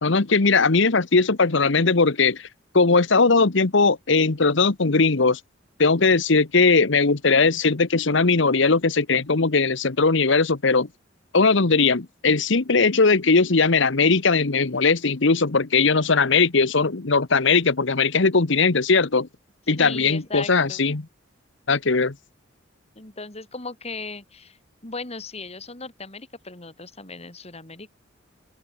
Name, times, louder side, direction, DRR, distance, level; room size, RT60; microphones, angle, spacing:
voice 1, 0.0-2.5 2.7-5.4 5.8-10.9 11.3-19.3 19.7-21.1 21.7-22.1, left 4 dB, 65° left, 1.1 m, -19 dB
voice 2, 19.8-20.8 22.9-24.6 24.8-27.9, left 3 dB, 30° left, 3.1 m, -37 dB
open air
head